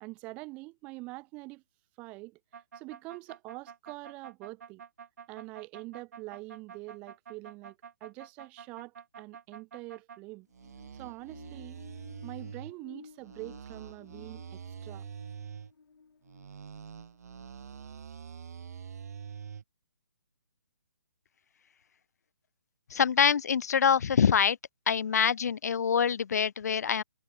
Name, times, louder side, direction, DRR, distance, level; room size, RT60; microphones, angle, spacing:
voice 1, 0.0-1.6 2.0-2.4 2.7-4.8 5.3-10.5 10.9-11.8 12.2-15.1, right 24 dB, 10° right, 0.6 m, -45 dB
sound 1, 2.5-10.2 10.5-12.7 13.2-15.7 16.2-19.6, right 7 dB, 50° right, 1.1 m, -46 dB
sound 2, 10.4-18.1, left 5 dB, 85° left, 5.4 m, -55 dB
voice 2, 22.9-24.6 24.9-27.0, left 7 dB, 50° left, 0.6 m, -25 dB
hypercardioid pair, 170°, 11 cm